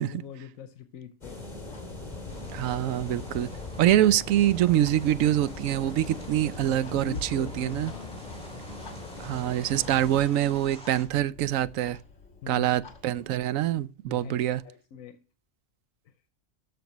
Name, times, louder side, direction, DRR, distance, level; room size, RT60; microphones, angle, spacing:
voice 1, 0.0-1.5 6.8-8.3 12.4-12.7 14.1-15.2 16.0-16.1, left 9 dB, 85° left, 1.2 m, -43 dB
sound 1, 1.2-10.3, left 2 dB, 35° left, 2.3 m, -40 dB
Clock, 1.7-13.5, left 3 dB, 60° left, 2.0 m, -48 dB
sound 2, 2.3-11.1, equal, 5° left, 2.0 m, -50 dB
voice 2, 2.5-3.5 3.8-7.9 9.2-12.0 12.5-14.6, right 12 dB, 80° right, 1.0 m, -25 dB
13.5 x 5.3 x 3.0 m
omnidirectional pair, 1.4 m